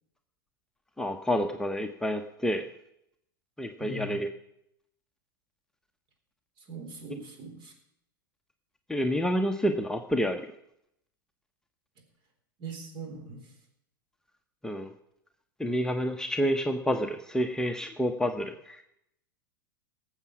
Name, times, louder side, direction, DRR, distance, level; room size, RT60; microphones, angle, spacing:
voice 1, 1.0-2.6 3.6-4.3 8.9-10.5 14.6-14.9 15.6-18.8, equal, 5° left, 4 dB, 0.9 m, -29 dB
voice 2, 3.8-4.2 6.7-7.7 12.6-13.5, right 2 dB, 45° right, 4 dB, 3.8 m, -41 dB
18.0 x 7.2 x 6.1 m, 0.77 s
hypercardioid pair, 95°, 11 cm